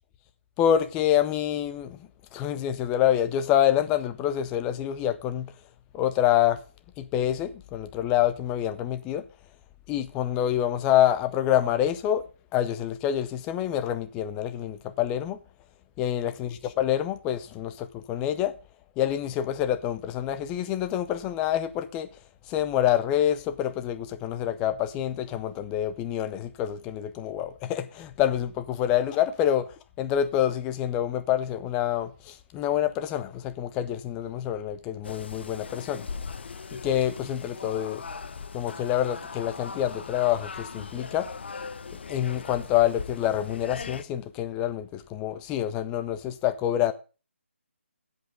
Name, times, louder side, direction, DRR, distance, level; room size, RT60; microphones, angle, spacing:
voice 1, 0.6-2.0 2.3-5.4 5.9-6.6 7.1-9.2 9.9-12.2 12.5-15.4 16.0-17.7 18.1-18.5 19.0-22.1 22.5-29.7 30.0-32.1 32.5-36.0 36.8-38.0 38.5-41.3 42.1-46.9, left 11 dB, 15° left, 0.6 m, -26 dB
sound 1, 35.0-44.0, left 5 dB, 55° left, 0.9 m, -39 dB
16.0 x 5.4 x 5.2 m
hypercardioid pair, 165°, 7 cm